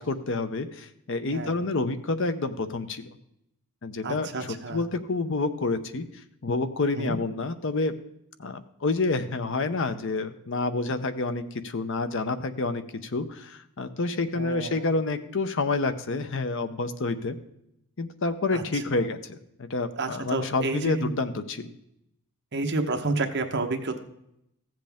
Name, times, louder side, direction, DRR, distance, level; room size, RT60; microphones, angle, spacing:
voice 1, 0.0-3.0 3.8-4.3 4.7-6.1 6.4-7.9 8.4-17.4 18.0-21.7, left 3 dB, 55° left, 10 dB, 0.7 m, -28 dB
voice 2, 4.0-4.8 6.9-7.2 14.3-14.9 18.5-18.8 20.0-21.1 22.5-24.0, right 3 dB, 50° right, 4 dB, 1.0 m, -30 dB
15.0 x 7.7 x 3.5 m, 0.78 s
head